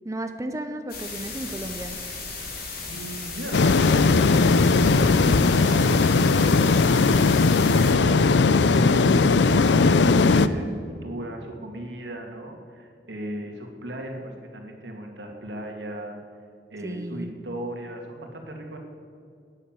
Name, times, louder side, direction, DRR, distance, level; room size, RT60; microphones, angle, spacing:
voice 1, 0.0-2.0 16.8-17.3, right 1 dB, 20° right, 7 dB, 0.6 m, -33 dB
sound 1, 0.9-7.9, left 4 dB, 60° left, 2.9 m, -36 dB
voice 2, 2.5-16.2 16.7-18.8, right 1 dB, 80° right, 2 dB, 2.2 m, -37 dB
sound 2, 3.5-10.5, left 4 dB, 85° left, 0.5 m, -18 dB
12.5 x 9.9 x 7.5 m, 2.3 s
head